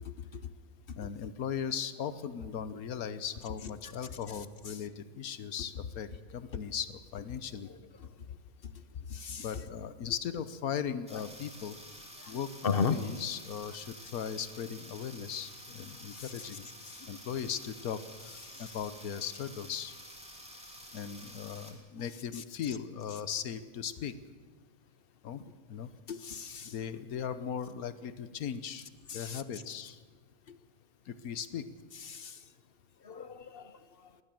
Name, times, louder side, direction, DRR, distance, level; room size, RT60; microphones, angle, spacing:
voice 1, 1.0-7.7 9.4-11.7 12.3-12.5 12.9-16.7 17.0-19.9 20.9-24.1 25.2-25.4 25.7-25.9 26.6-28.9 29.1-30.0 31.1-31.7, left 8 dB, 85° left, 13 dB, 1.4 m, -38 dB
voice 2, 9.1-9.4 12.6-13.0 26.1-26.7 29.2-29.4 32.1-32.3 33.1-33.6, left 5 dB, 45° left, 12 dB, 0.9 m, -33 dB
sound 1, 11.1-21.7, equal, 5° right, 3.0 m, -50 dB
21.0 x 17.5 x 7.7 m, 1.5 s
omnidirectional pair, 1.5 m